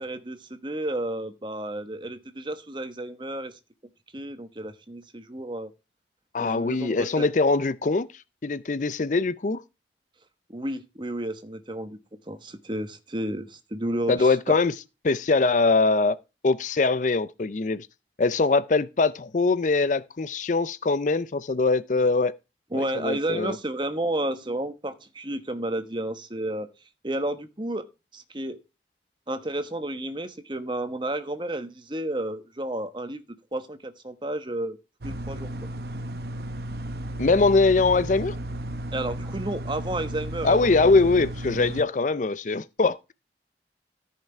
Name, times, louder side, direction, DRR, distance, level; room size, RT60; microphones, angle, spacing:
voice 1, 0.0-3.6 4.1-5.7 6.4-7.3 10.5-12.0 12.3-14.6 22.7-26.7 27.0-27.9 28.1-28.6 29.3-33.2 33.5-34.8 35.0-35.5 38.9-40.9, right 1 dB, 25° right, 1.1 m, -32 dB
voice 2, 6.3-8.1 8.4-9.6 14.1-14.7 15.0-16.2 16.4-17.9 18.2-22.3 22.7-23.6 37.2-38.4 40.4-43.1, left 3 dB, 45° left, 0.5 m, -22 dB
sound 1, 35.0-41.8, right 1 dB, 60° right, 0.8 m, -34 dB
14.0 x 5.9 x 4.4 m
head